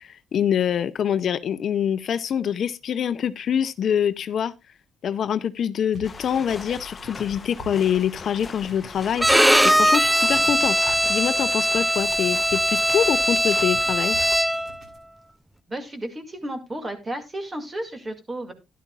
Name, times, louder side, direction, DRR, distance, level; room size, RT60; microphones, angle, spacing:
voice 1, 0.0-4.5 5.0-9.3 9.6-10.8 11.1-14.2, left 8 dB, 60° left, 0.5 m, -25 dB
sound 1, 5.9-15.0, right 4 dB, 50° right, 7.6 m, -46 dB
sound 2, 6.0-14.4, left 4 dB, 35° left, 0.8 m, -41 dB
Bowed string instrument, 9.2-14.8, equal, 5° right, 0.5 m, -20 dB
voice 2, 15.7-18.5, right 1 dB, 25° right, 2.2 m, -33 dB
12.0 x 11.0 x 2.4 m
cardioid pair, 90°, 0 cm